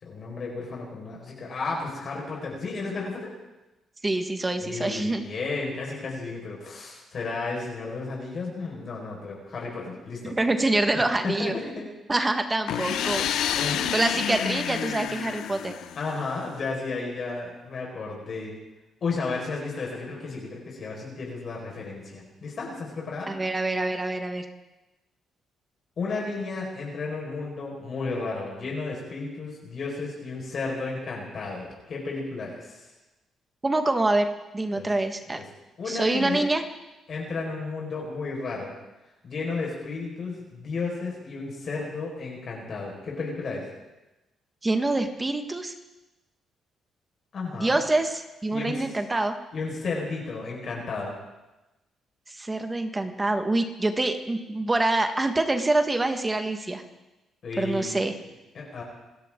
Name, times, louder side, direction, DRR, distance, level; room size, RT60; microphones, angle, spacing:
voice 1, 0.0-3.3 4.6-10.3 11.2-11.8 13.6-14.1 16.0-18.5 19.0-23.3 26.0-32.8 34.7-34.9 35.4-35.5 35.8-36.4 37.1-38.7 39.2-43.7 47.3-47.8 48.5-48.8 49.5-51.1 57.4-58.0 58.5-58.8, left 3 dB, 50° left, -2 dB, 5.2 m, -33 dB
voice 2, 4.0-5.2 10.2-11.5 12.1-13.3 13.9-15.7 23.3-24.5 33.6-35.4 35.9-36.6 44.6-45.7 47.5-49.4 52.3-56.8 57.6-58.1, right 2 dB, 20° right, 6 dB, 1.7 m, -26 dB
sound 1, 12.7-16.4, left 10 dB, 80° left, 0.8 m, -29 dB
27.0 x 13.5 x 3.9 m, 1.0 s
cardioid pair, 90°, 0 cm